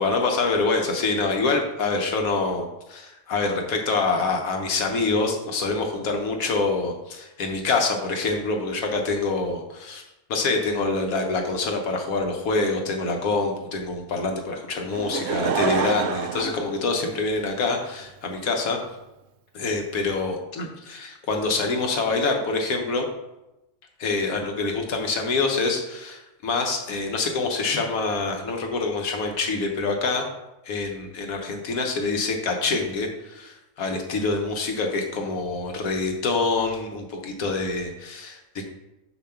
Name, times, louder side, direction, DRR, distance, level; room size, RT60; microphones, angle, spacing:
voice 1, 0.0-10.0 10.3-18.8 19.5-23.1 24.0-30.3 30.7-38.6, left 3 dB, 75° left, 3 dB, 1.4 m, -26 dB
Laughter / Crowd, 14.9-17.6 18.3-18.4, right 6 dB, 65° right, 0.7 m, -27 dB
6.8 x 2.9 x 5.7 m, 0.96 s
omnidirectional pair, 1.5 m